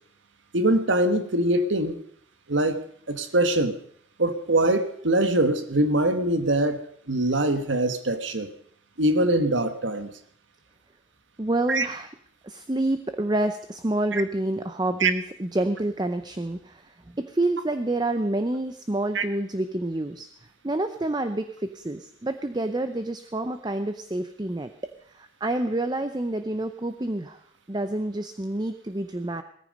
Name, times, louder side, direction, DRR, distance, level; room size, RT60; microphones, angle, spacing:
voice 1, 0.5-2.0 2.5-2.8 3.1-3.8 4.2-6.8 7.1-8.5 9.0-10.1 11.7-11.9 15.0-15.1 19.1-19.2, right 1 dB, 80° right, 10 dB, 1.4 m, -23 dB
voice 2, 11.4-12.1 12.4-20.3 20.6-24.7 25.1-27.4 27.7-29.4, right 1 dB, 20° right, 9 dB, 0.6 m, -28 dB
17.5 x 14.5 x 5.3 m, 0.65 s
head